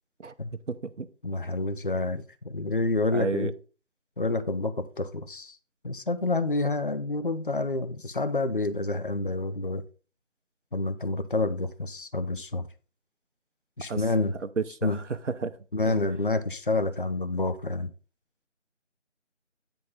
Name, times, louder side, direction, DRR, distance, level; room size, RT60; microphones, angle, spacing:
voice 1, 0.7-1.1 3.1-3.5 13.9-14.0 14.6-15.0 15.4-15.5 15.8-16.0, right 4 dB, 75° right, 0.8 m, -31 dB
voice 2, 1.2-3.5 4.2-5.6 5.8-9.8 10.7-12.6 13.8-14.3 14.8-15.0 15.7-17.9, left 2 dB, 45° left, 0.6 m, -28 dB
9.8 x 3.6 x 5.5 m
figure-of-eight pair, 170°, 37 cm